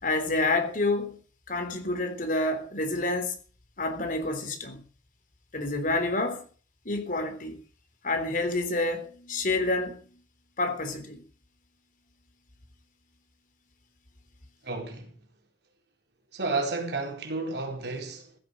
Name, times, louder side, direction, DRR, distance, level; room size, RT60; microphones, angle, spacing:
voice 1, 0.0-1.2 1.5-3.4 3.8-4.8 5.5-6.5 6.9-7.6 8.0-10.0 10.6-11.2, left 2 dB, 50° left, 3.6 m, -28 dB
voice 2, 14.6-15.2 16.3-18.4, right 3 dB, 65° right, 4.2 m, -32 dB
15.5 x 11.0 x 6.5 m
head